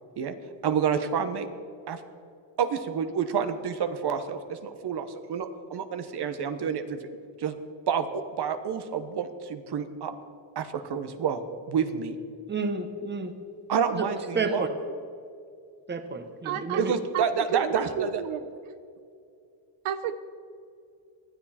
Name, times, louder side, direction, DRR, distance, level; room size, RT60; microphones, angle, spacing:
voice 1, 0.6-1.5 1.9-2.0 2.6-7.0 7.4-7.6 7.9-10.1 10.5-11.4 11.7-12.2 13.7-14.6 16.8-18.2, right 7 dB, 55° right, 9 dB, 1.5 m, -28 dB
voice 2, 12.5-13.3 14.0-14.1 14.3-14.7 15.9-16.9, right 4 dB, 20° right, 7 dB, 1.5 m, -30 dB
voice 3, 16.4-18.5 19.8-20.2, right 9 dB, 85° right, 11 dB, 0.9 m, -32 dB
19.5 x 13.0 x 4.5 m, 2.4 s
cardioid pair, 115°, 48 cm